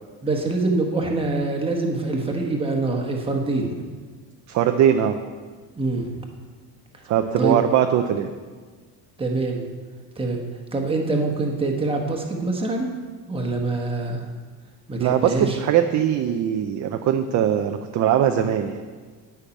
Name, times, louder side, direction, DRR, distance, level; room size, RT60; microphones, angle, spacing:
voice 1, 0.2-3.8 5.8-6.2 6.9-7.0 7.4-7.6 9.2-9.6 10.2-10.4 10.7-12.9 13.3-14.3 14.9-15.6, right 2 dB, 15° right, 1 dB, 1.2 m, -25 dB
voice 2, 4.5-5.2 7.1-8.3 15.0-18.8, right 9 dB, 45° right, 6 dB, 0.5 m, -21 dB
10.0 x 5.8 x 8.4 m, 1.5 s
cardioid pair, 170°, 40 cm